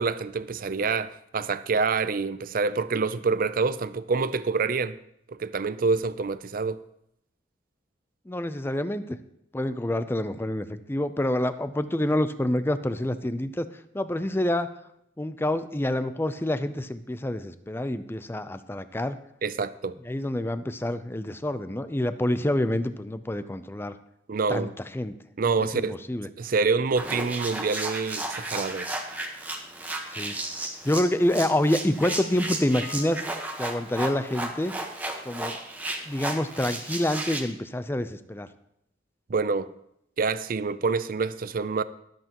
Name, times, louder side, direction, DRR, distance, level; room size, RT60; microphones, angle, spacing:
voice 1, 0.0-5.0 5.3-6.8 19.4-20.0 24.3-24.7 25.4-26.0 26.4-28.9 39.3-39.7 40.2-41.8, right 4 dB, 50° right, 0.5 m, -26 dB
voice 2, 8.3-9.2 9.5-13.7 13.9-14.7 15.2-19.2 20.1-24.0 24.5-25.2 25.6-26.3 30.1-30.4 30.8-33.3 33.6-34.7 35.3-35.6 36.0-38.5, left 1 dB, 10° left, 0.5 m, -27 dB
sound 1, 27.0-37.4, right 2 dB, 10° right, 1.1 m, -34 dB
sound 2, 32.0-35.0, left 5 dB, 60° left, 2.4 m, -46 dB
22.0 x 7.9 x 3.0 m
head